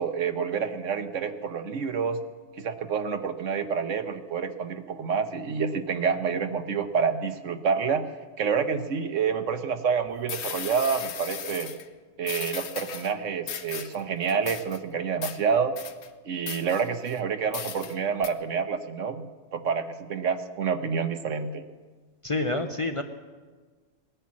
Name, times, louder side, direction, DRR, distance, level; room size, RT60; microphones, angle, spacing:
voice 1, 0.0-2.2 2.5-8.1 8.4-11.7 12.2-15.8 16.2-19.2 19.5-21.6, right 6 dB, 75° right, 9 dB, 1.3 m, -28 dB
sound 1, 9.9-10.0 10.3-11.9 12.2-13.1 13.5-14.0 14.3-14.8 15.2-15.4 15.8-16.1 16.5-17.2 17.5-18.0 18.2-18.3, left 8 dB, 65° left, 1.0 m, -37 dB
voice 2, 22.2-23.0, left 2 dB, 35° left, 6 dB, 0.6 m, -27 dB
18.5 x 10.0 x 7.4 m, 1.4 s
omnidirectional pair, 1.3 m